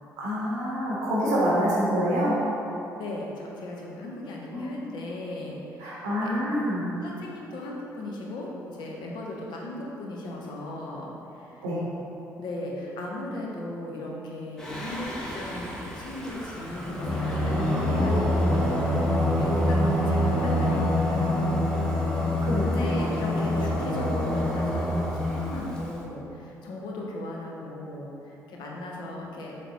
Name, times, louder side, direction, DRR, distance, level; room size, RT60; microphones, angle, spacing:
voice 1, 0.2-2.4 4.5-4.7 5.8-6.9 11.6-11.9 22.4-23.0, equal, 90° right, -6 dB, 0.7 m, -26 dB
voice 2, 3.0-6.3 7.0-11.6 12.4-21.8 22.6-29.6, left 1 dB, 70° left, -2 dB, 0.6 m, -37 dB
Singing, 14.6-25.9, left 1 dB, 10° left, 0.8 m, -26 dB
3.9 x 3.4 x 2.7 m, 2.9 s
hypercardioid pair, 50°, 8 cm